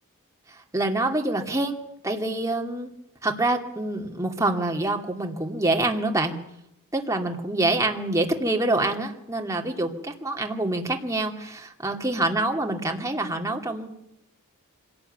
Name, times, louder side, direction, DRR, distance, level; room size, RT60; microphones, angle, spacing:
voice 1, 0.7-1.8 2.0-2.9 3.2-6.3 6.9-13.9, right 2 dB, 15° right, 2 dB, 2.6 m, -26 dB
25.5 x 18.0 x 9.4 m, 0.82 s
head